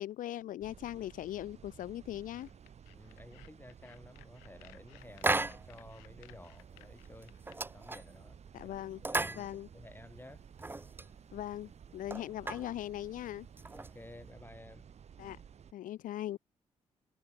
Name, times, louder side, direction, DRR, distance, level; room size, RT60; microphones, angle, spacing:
voice 1, 0.0-2.5 8.5-9.0 9.4-9.7 11.3-13.5 15.2-15.4 15.7-16.4, left 13 dB, 70° left, 0.6 m, -40 dB
sound 1, 0.6-15.7, right 7 dB, 50° right, 0.7 m, -55 dB
sound 2, 2.3-7.6, left 34 dB, 90° left, 1.5 m, -60 dB
voice 2, 2.9-7.4 7.7-8.8 9.0-10.4 13.7-14.9, left 1 dB, 15° left, 5.3 m, -53 dB
sound 3, 5.2-5.9 6.2-6.3 6.7-6.9 7.2-8.4 8.9-10.0 10.4-11.1 11.6-11.7 11.9-12.7 13.4-14.3, right 2 dB, 15° right, 0.5 m, -35 dB
hypercardioid pair, 45°, 14 cm